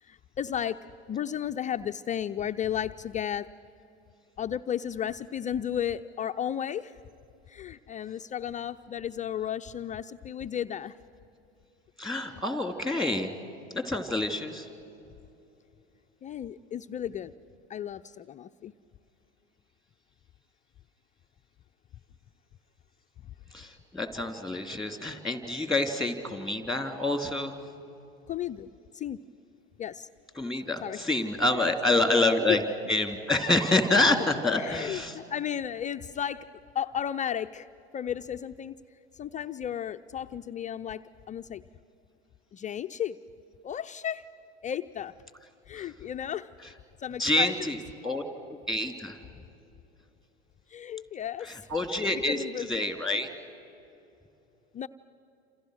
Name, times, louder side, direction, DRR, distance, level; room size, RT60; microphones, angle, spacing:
voice 1, 0.0-3.5 4.4-6.9 7.5-11.0 12.2-12.4 16.2-17.3 17.7-18.7 28.3-29.2 29.8-30.1 30.8-31.0 31.5-31.7 32.5-32.6 34.6-36.5 36.7-37.7 37.9-38.8 39.1-41.6 42.5-43.2 43.6-44.3 44.6-45.1 45.7-46.5 47.0-47.7 48.1-48.2 50.7-51.7 52.3-52.8 54.7-54.9, left 9 dB, 25° left, 8 dB, 0.5 m, -34 dB
voice 2, 12.0-13.3 13.7-14.7 23.5-27.6 30.4-32.6 32.9-35.1 45.8-45.9 47.2-47.8 48.0-48.2 48.7-49.2 51.5-52.4 52.7-53.3, left 2 dB, ahead, 7 dB, 2.7 m, -27 dB
28.5 x 27.5 x 6.4 m, 2.8 s
hypercardioid pair, 85°, 32 cm